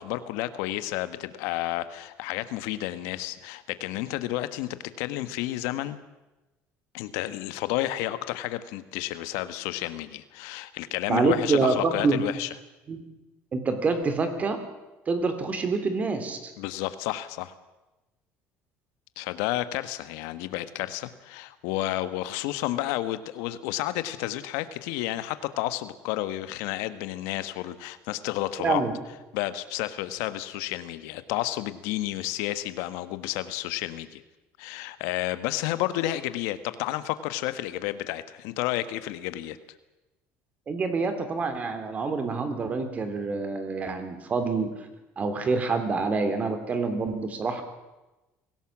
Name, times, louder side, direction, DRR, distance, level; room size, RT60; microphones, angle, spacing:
voice 1, 0.0-6.0 6.9-12.5 16.6-17.5 19.2-28.8 29.3-34.2 34.6-39.6, left 15 dB, 90° left, 13 dB, 1.3 m, -31 dB
voice 2, 11.1-12.2 12.9-13.0 13.5-14.6 15.1-16.5 28.6-28.9 40.7-44.7 45.2-47.6, right 4 dB, 30° right, 8 dB, 3.1 m, -26 dB
23.5 x 17.0 x 7.4 m, 1.1 s
cardioid pair, 135°, 5 cm